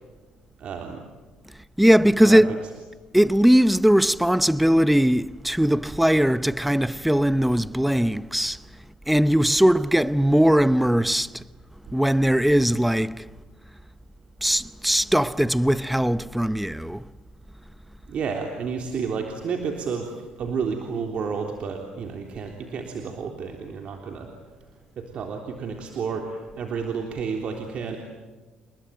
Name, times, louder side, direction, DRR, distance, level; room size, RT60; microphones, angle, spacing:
voice 1, 0.6-1.0 2.2-2.6 18.1-24.3 25.0-28.0, right 5 dB, 60° right, 3.5 m, -31 dB
voice 2, 1.8-2.5 3.1-8.6 9.1-11.3 11.9-13.2 14.4-17.0, equal, 5° right, 0.8 m, -19 dB
29.5 x 20.5 x 9.2 m
cardioid pair, 85°, 2 cm